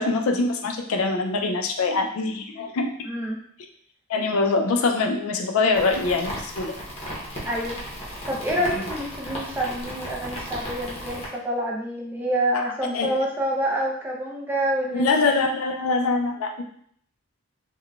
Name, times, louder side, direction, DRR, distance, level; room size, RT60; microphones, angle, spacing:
voice 1, 0.0-3.1 4.1-6.7 8.5-8.9 12.5-12.6 12.9-13.2 14.9-16.6, left 3 dB, 90° left, 4 dB, 0.4 m, -24 dB
voice 2, 3.0-3.4 7.5-7.8 8.3-15.2, right 1 dB, 10° right, -2 dB, 0.4 m, -27 dB
sound 1, 5.7-11.3, equal, 30° left, 0.8 m, -35 dB
3.7 x 2.2 x 2.3 m, 0.63 s
head